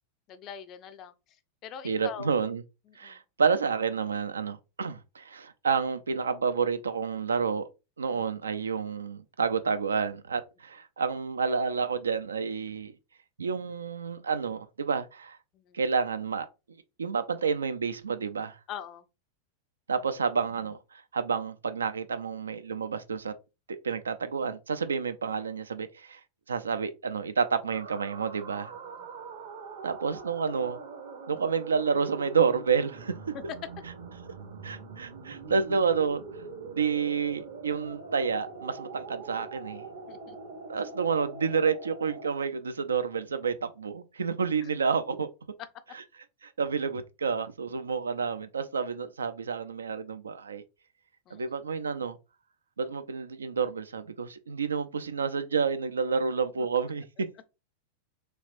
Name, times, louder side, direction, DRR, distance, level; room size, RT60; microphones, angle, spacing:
voice 1, 0.3-2.4 2.9-3.2 8.1-8.3 15.5-15.8 18.7-19.0 28.8-29.1 33.3-33.4 40.1-40.4 44.6-44.7 45.6-45.7 51.3-51.5, left 9 dB, 35° left, 0.4 m, -43 dB
voice 2, 1.8-2.6 3.0-7.7 8.0-12.9 13.4-15.4 15.7-16.5 17.0-18.6 19.9-23.3 23.8-26.2 26.5-28.7 29.8-30.8 31.3-33.3 34.6-36.2 36.7-39.9 40.7-45.3 46.6-50.6 51.3-52.2 52.8-57.3, right 5 dB, 70° right, 0.4 m, -29 dB
sound 1, 27.7-42.3, right 4 dB, 55° right, 0.8 m, -43 dB
3.2 x 3.1 x 2.5 m
figure-of-eight pair, 90°, 0 cm